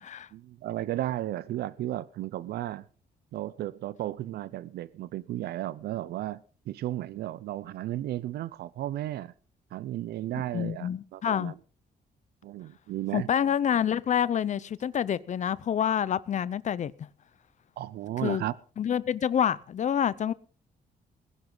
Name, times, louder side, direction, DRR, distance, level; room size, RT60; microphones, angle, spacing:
voice 1, 0.3-2.9 3.3-9.3 9.7-11.5 12.4-13.3 17.8-18.6, right 14 dB, 80° right, 0.6 m, -34 dB
voice 2, 10.5-11.5 13.1-16.9 18.2-18.4 18.8-20.3, left 9 dB, 50° left, 0.7 m, -27 dB
20.5 x 11.0 x 3.9 m
cardioid pair, 115°, 16 cm